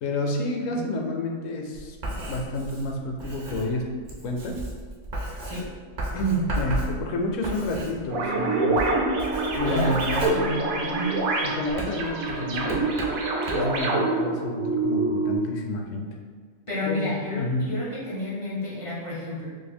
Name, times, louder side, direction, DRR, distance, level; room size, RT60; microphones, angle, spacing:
voice 1, 0.0-3.9 4.2-4.6 6.1-8.8 9.5-12.8 13.5-16.1 16.8-17.6, left 1 dB, 70° left, 2 dB, 0.9 m, -29 dB
Writing, 1.7-8.4 8.7-11.2 11.7-13.8, right 1 dB, 45° right, 0.6 m, -34 dB
sound 1, 8.1-15.4, right 2 dB, 80° right, 1.0 m, -26 dB
voice 2, 9.6-10.7 16.7-19.5, left 2 dB, 35° left, -7 dB, 0.5 m, -31 dB
2.7 x 2.5 x 4.2 m, 1.5 s
omnidirectional pair, 1.5 m